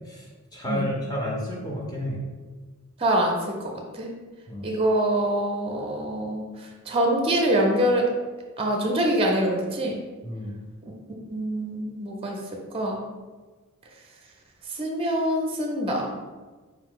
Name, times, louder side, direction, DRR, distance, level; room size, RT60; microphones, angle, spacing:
voice 1, 0.5-2.2 4.5-4.7 10.2-10.6, equal, 20° left, -3 dB, 0.7 m, -31 dB
voice 2, 3.0-3.4 3.9-4.1 4.6-6.4 6.9-8.1 8.6-10.0 11.3-12.4 12.7-13.0 14.8-16.1, right 1 dB, 25° right, 0 dB, 0.6 m, -24 dB
4.7 x 2.8 x 3.8 m, 1.3 s
head